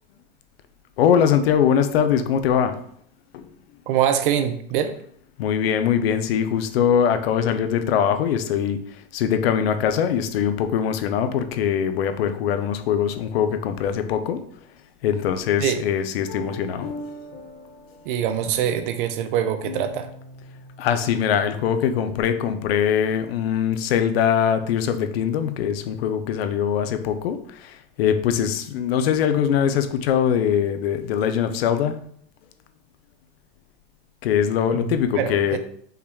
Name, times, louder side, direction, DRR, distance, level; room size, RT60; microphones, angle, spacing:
voice 1, 1.0-2.8 3.3-3.5 5.4-8.8 9.1-14.4 15.0-16.9 20.8-32.0 34.2-35.6, left 8 dB, 80° left, 9 dB, 0.6 m, -22 dB
voice 2, 3.9-4.9 15.6-15.8 18.1-20.1 34.7-35.6, right 9 dB, 60° right, 9 dB, 0.6 m, -24 dB
sound 1, 16.3-22.8, left 2 dB, 25° left, 0.6 m, -41 dB
5.5 x 2.3 x 3.4 m, 0.63 s
supercardioid pair, 150°, 29 cm